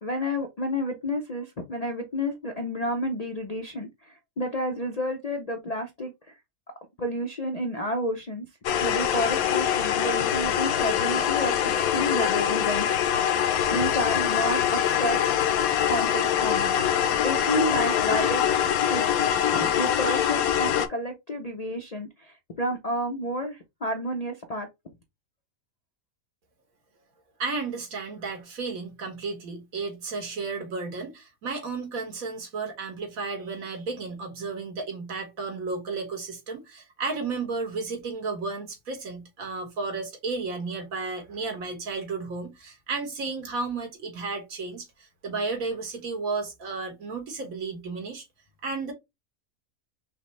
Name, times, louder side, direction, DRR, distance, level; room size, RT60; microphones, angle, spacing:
voice 1, 0.0-6.3 7.0-8.5 8.8-12.9 13.7-15.2 15.9-16.7 17.2-18.4 18.9-19.0 19.5-24.7, equal, 50° left, 0.5 m, -30 dB
sound 1, 8.6-20.9, left 9 dB, 85° left, 1.1 m, -24 dB
voice 2, 27.4-48.2 48.6-48.9, right 4 dB, 75° right, 1.7 m, -33 dB
5.7 x 2.0 x 3.1 m
omnidirectional pair, 1.5 m